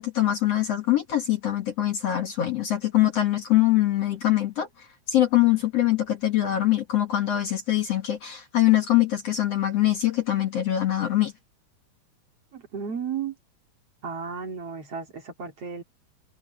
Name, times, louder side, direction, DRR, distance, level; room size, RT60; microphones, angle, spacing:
voice 1, 0.0-11.3, left 13 dB, 50° left, 2.5 m, -23 dB
voice 2, 12.5-13.4 14.0-15.8, right 6 dB, 45° right, 3.7 m, -33 dB
omnidirectional pair, 4.0 m